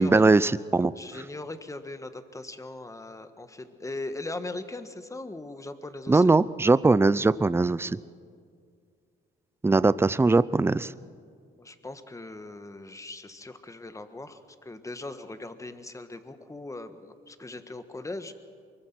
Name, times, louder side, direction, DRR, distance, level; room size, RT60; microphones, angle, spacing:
voice 1, 0.0-0.9 6.1-8.0 9.6-10.9, right 3 dB, 10° right, 18 dB, 0.5 m, -21 dB
voice 2, 0.9-6.3 11.5-18.3, left 2 dB, 15° left, 9 dB, 1.5 m, -39 dB
23.5 x 21.5 x 6.1 m, 2.1 s
cardioid pair, 90°, 20 cm